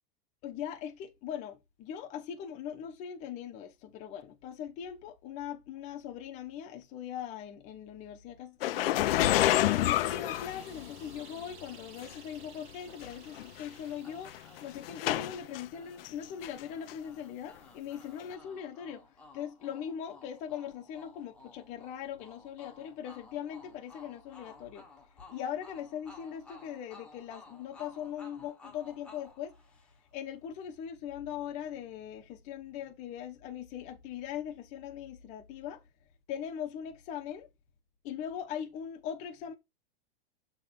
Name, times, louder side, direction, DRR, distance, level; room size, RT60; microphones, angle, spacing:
voice 1, 0.4-8.9 9.4-14.3 14.6-19.1 19.3-24.9 25.3-29.6 30.1-35.8 36.3-37.5 38.0-39.5, left 9 dB, 25° left, 0.8 m, -40 dB
sound 1, 8.6-11.2 12.0-12.1 13.0-13.1 13.4-13.7 14.3-15.6 16.0-16.6 16.9-17.0 18.2-18.3, left 14 dB, 75° left, 0.6 m, -28 dB
sound 2, 9.0-15.4, right 6 dB, 30° right, 1.4 m, -55 dB
sound 3, 14.0-30.2, left 3 dB, 5° left, 1.1 m, -56 dB
6.8 x 3.1 x 5.6 m
supercardioid pair, 175°, 29 cm